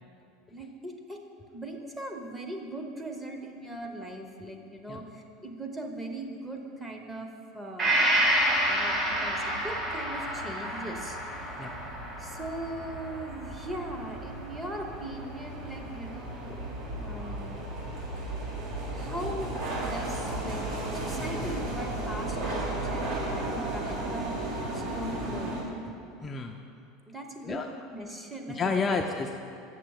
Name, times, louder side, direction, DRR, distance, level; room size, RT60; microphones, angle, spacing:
voice 1, 0.5-1.2 1.5-8.1 8.7-11.2 12.2-16.5 17.0-17.6 18.9-20.6 20.9-25.6 27.1-27.6 27.9-28.9, right 1 dB, 10° right, 3 dB, 0.9 m, -40 dB
Gong, 7.8-15.4 15.8-15.9, right 1 dB, 35° right, 1.5 m, -30 dB
sound 1, 8.2-25.6, right 1 dB, 60° right, 1.7 m, -35 dB
voice 2, 26.2-26.6 27.4-27.7 28.5-29.4, left 4 dB, 25° left, 2 dB, 0.4 m, -30 dB
7.6 x 6.6 x 4.7 m, 2.5 s
supercardioid pair, 125°, 0 cm